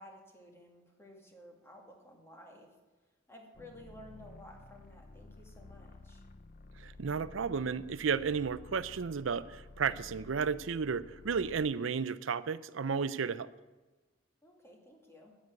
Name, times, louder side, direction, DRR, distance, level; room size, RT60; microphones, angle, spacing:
voice 1, 0.0-2.7 3.3-6.2 14.4-15.3, left 1 dB, 15° left, 1 dB, 2.1 m, -54 dB
sound 1, 3.5-11.8, left 2 dB, 45° left, 0.7 m, -53 dB
voice 2, 6.8-13.5, right 6 dB, 80° right, 16 dB, 0.5 m, -33 dB
9.8 x 9.2 x 8.2 m, 1.2 s
head